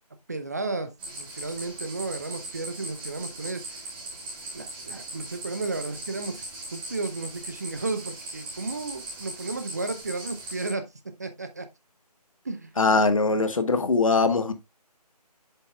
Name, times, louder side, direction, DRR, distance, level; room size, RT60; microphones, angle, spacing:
voice 1, 0.3-3.8 4.5-10.9 11.2-11.7 12.4-12.7, right 3 dB, 25° right, 0.6 m, -33 dB
sound 1, 1.0-10.7, right 2 dB, 10° right, 1.7 m, -39 dB
voice 2, 12.8-14.5, left 3 dB, 55° left, 1.2 m, -21 dB
7.5 x 7.4 x 2.2 m
figure-of-eight pair, 160°, 21 cm